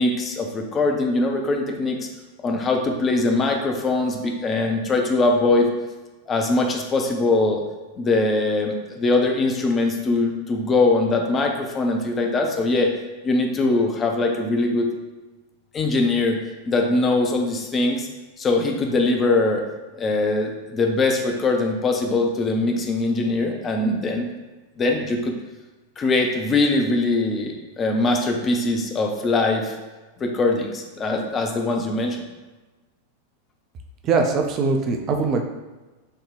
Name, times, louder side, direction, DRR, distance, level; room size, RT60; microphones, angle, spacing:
voice 1, 0.0-2.0 2.4-5.7 6.3-7.6 8.0-12.9 13.2-14.9 15.7-16.4 16.7-18.1 18.4-19.6 19.9-24.3 24.8-25.3 26.0-29.8 30.2-32.2, left 2 dB, 25° left, 2 dB, 0.6 m, -22 dB
voice 2, 34.0-35.4, right 4 dB, 35° right, 3 dB, 0.5 m, -21 dB
5.8 x 2.3 x 3.3 m, 1.2 s
figure-of-eight pair, 90°, 0 cm